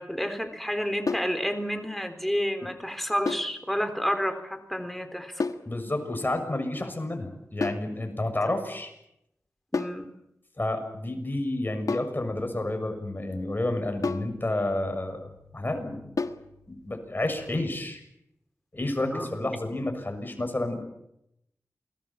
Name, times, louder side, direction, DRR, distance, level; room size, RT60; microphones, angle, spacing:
voice 1, 0.0-5.4 9.7-10.1 19.1-19.3, equal, 5° left, 7 dB, 3.8 m, -30 dB
sound 1, 1.1-1.4 3.3-3.6 5.4-5.7 7.6-7.9 9.7-10.0 11.9-12.2 14.0-14.4 16.2-16.5, left 4 dB, 80° left, 1.4 m, -30 dB
voice 2, 5.6-8.9 10.6-16.1 16.7-18.0 18.7-20.8, left 1 dB, 35° left, 6 dB, 6.8 m, -30 dB
28.5 x 20.5 x 7.4 m, 0.81 s
cardioid pair, 50°, 6 cm